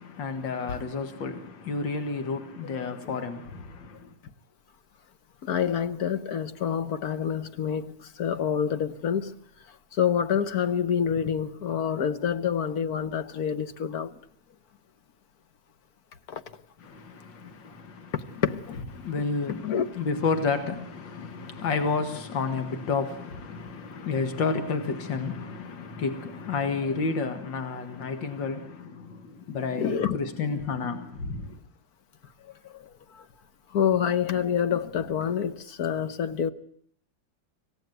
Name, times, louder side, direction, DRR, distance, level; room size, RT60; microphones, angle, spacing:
voice 1, 0.0-4.1 16.8-18.1 19.0-31.6, left 4 dB, 80° left, 2.6 m, -31 dB
voice 2, 5.4-9.3 9.9-14.2 16.3-16.4 18.1-19.2 19.6-19.9 29.7-30.2 32.7-33.2 33.7-36.5, left 8 dB, 55° left, 1.6 m, -27 dB
26.0 x 16.5 x 9.4 m
omnidirectional pair, 2.0 m